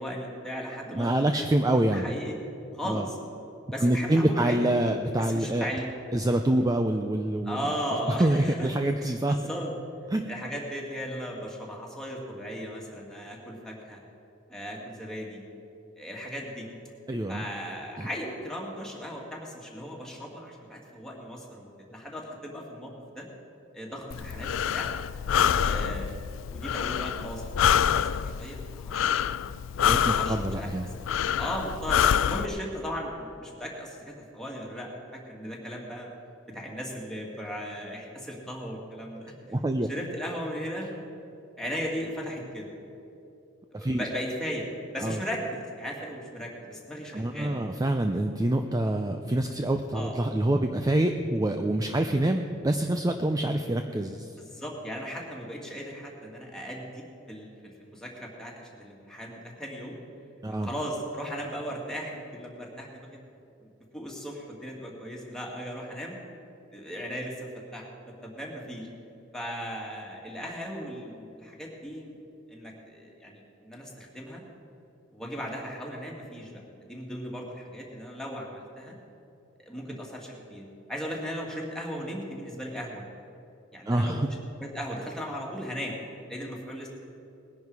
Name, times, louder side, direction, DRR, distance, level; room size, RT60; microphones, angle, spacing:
voice 1, 0.0-1.1 1.4-1.5 1.9-2.4 2.7-3.2 3.7-4.6 5.2-5.9 7.5-8.7 9.0-9.7 10.3-14.0 14.5-15.4 16.0-16.7 17.3-23.3 23.7-24.9 25.6-26.3 26.5-29.3 30.1-30.7 31.2-36.1 36.5-39.3 39.9-40.9 41.6-42.7 43.7-44.7 44.9-47.6 49.9-50.1 54.4-57.5 57.8-60.0 60.6-63.2 63.6-66.2 66.7-68.9 69.3-72.2 72.5-74.4 75.1-78.9 79.6-83.0 83.7-84.2 84.6-86.0 86.3-86.9, equal, 5° left, -2 dB, 2.2 m, -37 dB
voice 2, 0.9-2.1 2.8-3.1 3.8-5.7 6.1-7.6 8.2-9.4 10.1-10.3 17.1-17.4 18.0-18.1 29.8-30.9 39.4-39.9 43.7-44.1 45.0-45.2 47.1-54.3 60.4-60.7 83.9-84.3, right 1 dB, 20° right, 6 dB, 0.5 m, -26 dB
Breathing, 24.1-32.5, left 8 dB, 70° left, 0.4 m, -26 dB
19.5 x 10.5 x 4.8 m, 2.7 s
head